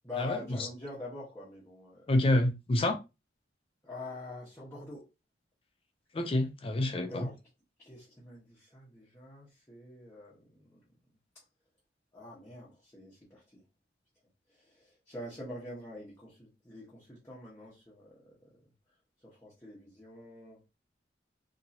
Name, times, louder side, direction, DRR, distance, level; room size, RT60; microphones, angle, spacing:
voice 1, 0.0-2.4 3.8-5.1 7.1-7.4 7.8-10.8 12.1-13.6 14.5-18.5 19.2-20.6, left 2 dB, 15° left, 1.0 m, -45 dB
voice 2, 2.1-3.0 6.1-7.3, left 1 dB, 30° left, 0.4 m, -27 dB
3.0 x 2.7 x 2.6 m
head